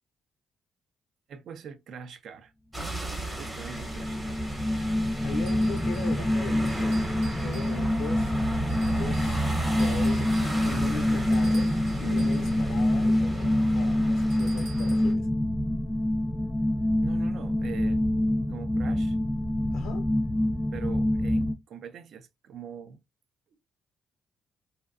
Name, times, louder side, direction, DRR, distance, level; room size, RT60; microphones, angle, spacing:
voice 1, 1.3-2.5 3.4-4.4 17.0-18.0 18.5-19.2 20.7-23.0, right 7 dB, 70° right, 0.4 m, -43 dB
sound 1, 2.7-15.1, right 2 dB, 15° right, 0.8 m, -35 dB
sound 2, 3.3-21.5, left 1 dB, 15° left, 0.3 m, -26 dB
voice 2, 5.2-7.0 7.3-8.4 8.8-15.3 19.7-20.1, left 4 dB, 80° left, 0.4 m, -39 dB
sound 3, 5.5-6.2 6.6-8.1 8.7-9.4 9.8-12.7 14.3-15.2, right 5 dB, 90° right, 0.8 m, -50 dB
2.6 x 2.0 x 2.4 m
cardioid pair, 90°, 0 cm